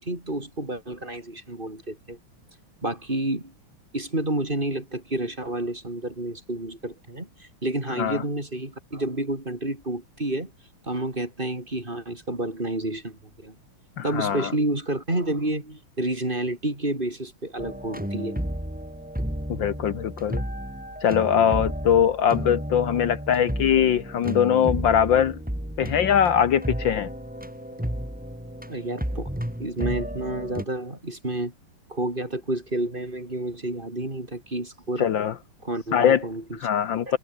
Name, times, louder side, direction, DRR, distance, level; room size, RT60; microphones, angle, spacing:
voice 1, 0.0-2.2 2.8-3.5 3.9-10.5 10.9-13.5 14.0-18.4 28.7-29.3 29.6-31.5 31.9-35.1 35.6-36.6 37.1-37.2, right 1 dB, 25° right, 4.7 m, -30 dB
voice 2, 14.0-14.5 19.5-20.4 21.0-25.4 25.8-27.1 35.0-35.3 35.9-36.2 36.6-37.2, left 9 dB, 65° left, 1.8 m, -21 dB
sound 1, 17.6-30.6, equal, 5° right, 3.4 m, -32 dB
omnidirectional pair, 2.3 m